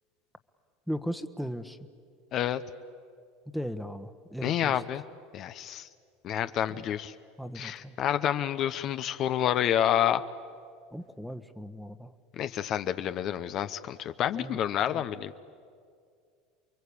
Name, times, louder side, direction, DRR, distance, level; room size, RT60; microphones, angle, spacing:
voice 1, 0.9-1.8 3.5-4.8 6.7-6.9 7.4-8.0 10.9-12.1 14.3-15.0, equal, ahead, 11 dB, 1.4 m, -37 dB
voice 2, 2.3-2.6 4.4-5.0 5.3-5.9 6.2-7.1 7.5-10.2 12.4-15.3, left 10 dB, 50° left, 10 dB, 0.9 m, -28 dB
29.5 x 22.5 x 8.6 m, 2.2 s
hypercardioid pair, 95°, 0 cm